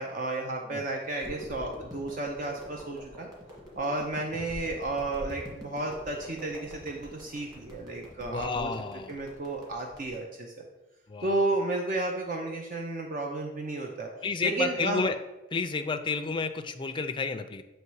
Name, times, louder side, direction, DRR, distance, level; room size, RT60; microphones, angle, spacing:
voice 1, 0.0-3.3 3.8-8.7 9.1-10.6 11.2-14.1 14.4-15.0, right 2 dB, 45° right, 1 dB, 0.6 m, -32 dB
sound 1, 1.2-10.1, equal, 20° right, 1.9 m, -46 dB
voice 2, 8.2-9.2 11.1-11.5 14.2-15.2 15.5-17.6, left 4 dB, 25° left, 8 dB, 0.4 m, -31 dB
7.9 x 3.1 x 4.7 m, 1.0 s
head